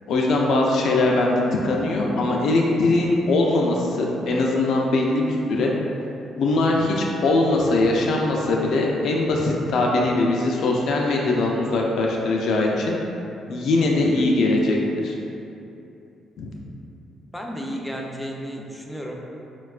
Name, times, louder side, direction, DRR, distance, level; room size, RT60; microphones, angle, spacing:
voice 1, 0.1-5.7 6.4-13.0 13.5-14.8 15.0-15.2 16.4-16.5, left 2 dB, 70° left, -1 dB, 0.3 m, -21 dB
voice 2, 17.3-19.1, equal, 5° left, 0 dB, 0.4 m, -33 dB
4.1 x 2.2 x 2.3 m, 2.8 s
cardioid pair, 70°, 0 cm